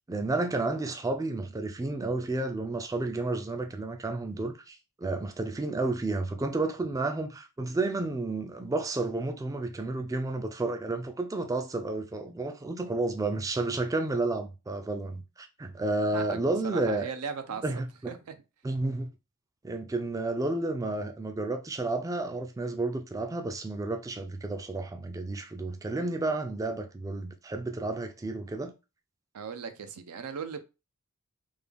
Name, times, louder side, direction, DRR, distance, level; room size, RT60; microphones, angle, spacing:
voice 1, 0.1-17.1 17.5-18.1 18.6-19.1 19.6-28.7, right 2 dB, 15° right, 0.3 m, -31 dB
voice 2, 16.1-18.4 29.3-30.6, right 6 dB, 85° right, 0.5 m, -38 dB
3.5 x 2.3 x 3.4 m
head